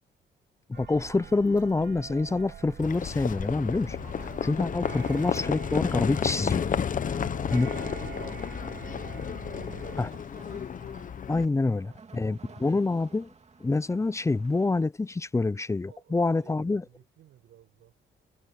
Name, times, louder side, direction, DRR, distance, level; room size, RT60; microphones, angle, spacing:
voice 1, 0.7-6.7 7.5-7.7 10.0-10.1 11.3-13.3 13.6-16.8, left 3 dB, 15° left, 0.6 m, -27 dB
sound 1, 0.7-10.1, right 9 dB, 60° right, 1.6 m, -44 dB
Livestock farm animals working animals, 2.8-11.4, left 7 dB, 40° left, 0.9 m, -32 dB
sound 2, 3.7-14.8, right 5 dB, 35° right, 2.6 m, -54 dB
voice 2, 6.9-10.6 11.4-12.7 15.9-17.9, right 12 dB, 80° right, 5.3 m, -57 dB
cardioid pair, 90°, 20 cm